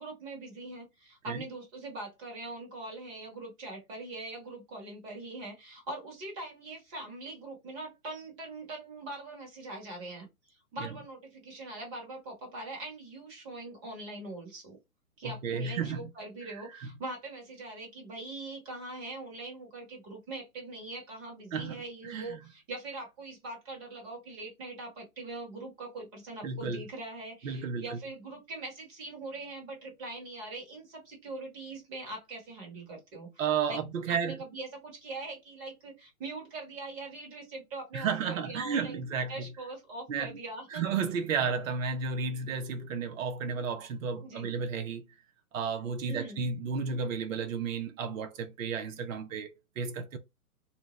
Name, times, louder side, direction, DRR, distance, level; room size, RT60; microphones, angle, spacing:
voice 1, 0.0-10.3 10.7-14.8 15.2-33.3 33.7-33.8 34.1-39.0 39.3-40.8 44.2-44.5 46.0-46.4, right 2 dB, 25° right, 1.3 m, -42 dB
voice 2, 15.2-16.1 16.4-16.9 21.5-22.4 26.4-26.8 27.4-28.0 33.4-34.4 37.9-39.5 40.1-40.4 40.7-45.1 45.5-50.2, right 5 dB, 60° right, 0.6 m, -33 dB
2.8 x 2.1 x 3.0 m
hypercardioid pair, 140°, 45 cm